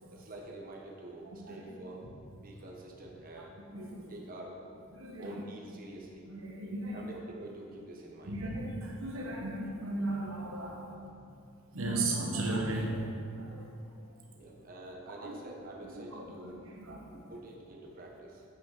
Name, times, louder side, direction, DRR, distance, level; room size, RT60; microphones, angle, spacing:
voice 1, 0.1-2.1 2.4-3.5 4.1-4.6 5.2-6.2 6.9-8.4 9.2-9.5 12.3-12.4 14.3-16.6 17.1-18.4, right 1 dB, 45° right, -2 dB, 1.2 m, -47 dB
voice 2, 3.7-4.1 4.9-5.5 6.3-7.0 8.2-10.9 11.7-13.7 15.2-15.4 15.9-16.5 16.8-17.1, right 2 dB, 75° right, 0 dB, 1.2 m, -36 dB
8.2 x 6.2 x 6.4 m, 2.3 s
head